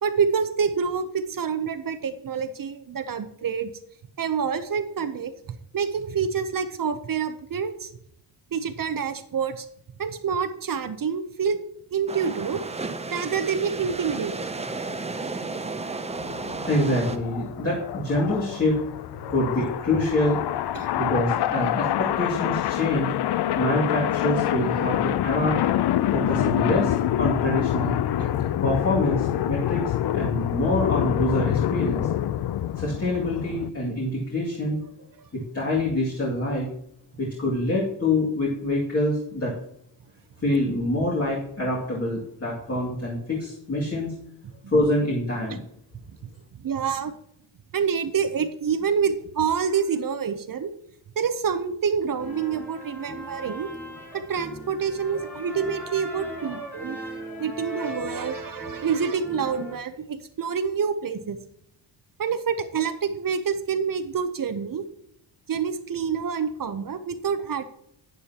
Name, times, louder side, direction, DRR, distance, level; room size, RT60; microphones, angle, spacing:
voice 1, 0.0-3.7 4.2-5.3 5.7-7.9 8.5-9.7 10.0-11.6 11.9-12.6 13.1-14.4 20.7-20.9 28.2-28.3 46.6-47.1 47.7-50.7 51.2-53.7 54.1-57.0 57.4-61.4 62.2-64.8 65.5-67.6, right 6 dB, 45° right, 10 dB, 0.8 m, -27 dB
sound 1, 12.1-17.2, right 3 dB, 15° right, 0.6 m, -33 dB
sound 2, 16.2-33.7, left 12 dB, 60° left, 0.5 m, -26 dB
voice 2, 16.7-18.8 19.3-20.4 21.0-23.1 23.5-25.5 26.1-28.0 28.6-32.1 32.8-34.8 35.3-36.7 37.2-39.5 40.4-44.1 44.7-45.6, left 1 dB, 30° left, -4 dB, 2.3 m, -25 dB
sound 3, 52.2-59.8, equal, 5° left, 3.4 m, -38 dB
11.5 x 9.5 x 2.9 m, 0.72 s
wide cardioid pair, 120°, 46 cm